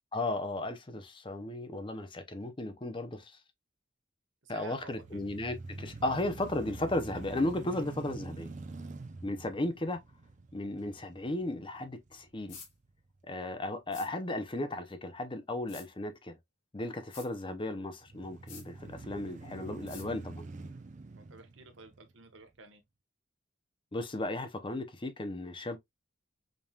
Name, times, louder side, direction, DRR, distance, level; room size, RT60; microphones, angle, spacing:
voice 1, 0.1-3.4 4.5-8.5 9.2-10.0 10.5-12.6 13.3-16.4 16.7-20.4 23.9-25.8, left 1 dB, 25° left, 0.6 m, -35 dB
voice 2, 4.4-5.2 6.0-6.2 7.8-7.9 9.5-9.6 21.2-22.8, right 3 dB, 70° right, 1.0 m, -53 dB
sound 1, 4.8-12.9 13.4-13.5 18.0-22.5, right 3 dB, 40° right, 0.5 m, -46 dB
sound 2, 12.5-12.7 13.9-14.1 15.7-15.9 17.1-17.3 18.5-18.7 19.9-20.1, left 6 dB, 80° left, 3.0 m, -48 dB
5.2 x 2.9 x 2.3 m
head